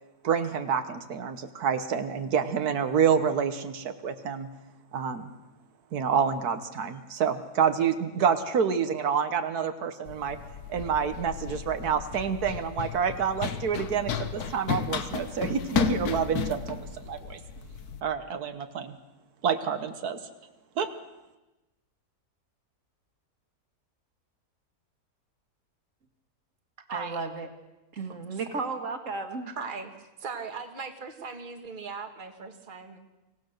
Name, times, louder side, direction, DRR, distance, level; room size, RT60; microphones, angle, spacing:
voice 1, 0.2-4.5 4.9-5.3 5.9-10.4 10.7-17.4 18.0-19.0 19.4-20.2 20.8-20.9, right 7 dB, 85° right, 8 dB, 1.7 m, -28 dB
Run, 10.1-18.0, left 6 dB, 85° left, 1.6 m, -33 dB
voice 2, 26.9-27.5 27.9-29.5, right 4 dB, 55° right, 6 dB, 2.3 m, -34 dB
voice 3, 29.6-29.9 30.2-33.0, right 5 dB, 35° right, 5 dB, 1.7 m, -38 dB
24.5 x 17.5 x 6.6 m, 1.0 s
omnidirectional pair, 1.6 m